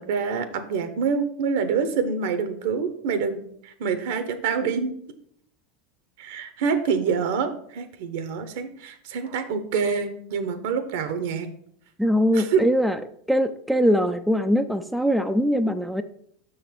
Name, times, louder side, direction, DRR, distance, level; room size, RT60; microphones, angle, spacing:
voice 1, 0.0-4.9 6.2-11.5 12.3-12.6, right 6 dB, 70° right, 11 dB, 0.9 m, -26 dB
voice 2, 12.0-13.0 13.3-16.0, equal, ahead, 7 dB, 0.4 m, -22 dB
6.4 x 3.9 x 6.1 m, 0.67 s
hypercardioid pair, 95°, 0 cm